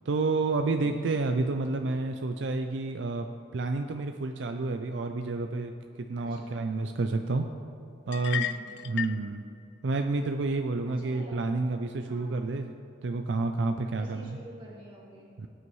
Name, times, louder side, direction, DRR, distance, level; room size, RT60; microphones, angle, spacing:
voice 1, 0.1-5.7 6.0-7.5 8.1-8.5 8.8-9.4 9.8-12.7 13.0-14.4 15.4-15.5, right 3 dB, 70° right, 6 dB, 0.5 m, -29 dB
voice 2, 0.8-1.2 6.2-6.7 8.3-9.2 10.8-11.5 12.1-12.4 13.8-15.5, equal, 25° right, -5 dB, 2.3 m, -49 dB
sound 1, 8.1-9.2, left 10 dB, 60° left, 0.3 m, -33 dB
18.0 x 8.2 x 3.2 m, 2.7 s
head